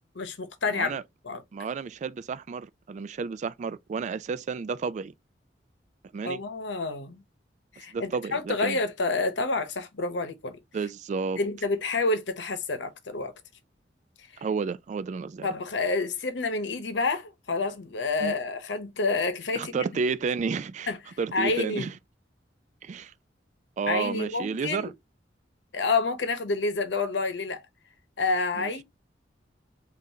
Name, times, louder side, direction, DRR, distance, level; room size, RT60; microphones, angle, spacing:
voice 1, 0.1-1.0 1.2-1.4 6.2-7.2 7.8-10.6 11.4-13.3 15.4-19.7 20.9-21.0 21.3-21.9 23.9-24.9 25.7-27.6 28.2-28.8, left 3 dB, 75° left, 0.9 m, -28 dB
voice 2, 0.7-1.0 1.5-5.1 6.1-6.4 7.8-8.8 10.7-11.4 14.4-15.5 18.2-18.3 19.6-20.9 21.2-21.9 22.8-23.1 23.8-24.9 28.6-28.7, right 5 dB, 40° right, 0.3 m, -31 dB
5.5 x 2.6 x 2.8 m
head